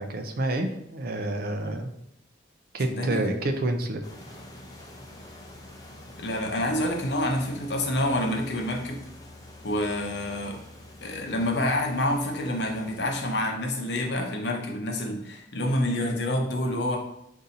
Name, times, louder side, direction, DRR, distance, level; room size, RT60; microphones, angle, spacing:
voice 1, 0.0-1.9 2.7-4.0, right 1 dB, 50° right, 6 dB, 0.5 m, -28 dB
voice 2, 2.9-3.3 6.2-9.0 9.6-10.6 11.0-17.0, left 1 dB, 60° left, 2 dB, 0.7 m, -27 dB
sound 1, 4.0-13.4, left 1 dB, 20° left, 0.6 m, -47 dB
4.0 x 2.7 x 4.0 m, 0.78 s
head